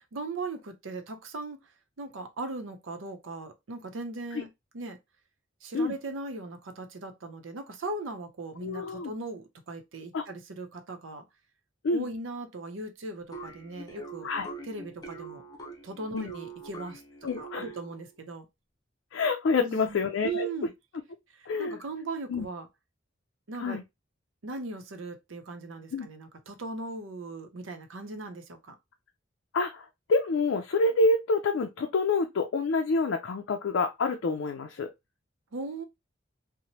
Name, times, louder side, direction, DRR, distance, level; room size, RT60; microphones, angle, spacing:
voice 1, 0.1-1.6 2.0-5.0 5.6-11.2 11.9-14.3 14.6-15.4 15.8-18.5 19.6-20.7 21.3-22.7 23.5-23.8 24.4-28.8 35.5-35.8, right 3 dB, 85° right, 0.7 m, -38 dB
voice 2, 8.6-9.1 10.1-10.2 11.8-12.1 14.2-14.5 16.1-16.3 17.2-17.6 19.1-20.5 21.5-21.8 22.3-22.5 23.6-23.8 25.9-26.1 29.5-34.9, left 3 dB, 75° left, 0.4 m, -27 dB
sound 1, 13.3-18.1, right 3 dB, 20° left, 0.6 m, -43 dB
3.0 x 2.1 x 2.7 m
head